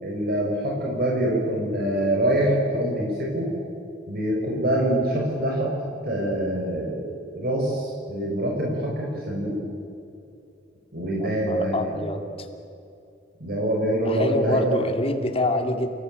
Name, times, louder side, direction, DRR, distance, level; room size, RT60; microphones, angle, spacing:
voice 1, 0.0-3.5 4.1-5.7 6.0-9.6 10.9-11.9 13.4-14.7, right 1 dB, 55° right, -2 dB, 5.0 m, -25 dB
voice 2, 11.2-12.3 14.0-15.9, left 1 dB, 30° left, 5 dB, 2.5 m, -26 dB
30.0 x 16.5 x 8.9 m, 2.6 s
head